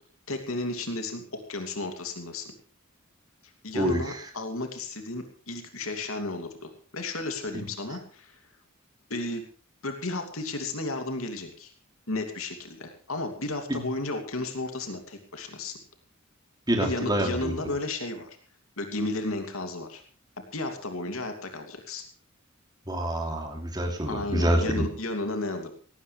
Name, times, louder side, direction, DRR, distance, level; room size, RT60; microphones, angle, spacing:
voice 1, 0.3-2.5 3.4-8.4 9.1-9.4 9.8-11.7 12.1-15.8 16.8-18.4 18.8-20.0 20.5-22.0 24.1-25.7, left 2 dB, 80° left, 5 dB, 2.8 m, -33 dB
voice 2, 16.7-17.5 22.9-24.8, equal, 20° right, 2 dB, 3.1 m, -26 dB
18.0 x 17.0 x 3.4 m, 0.44 s
head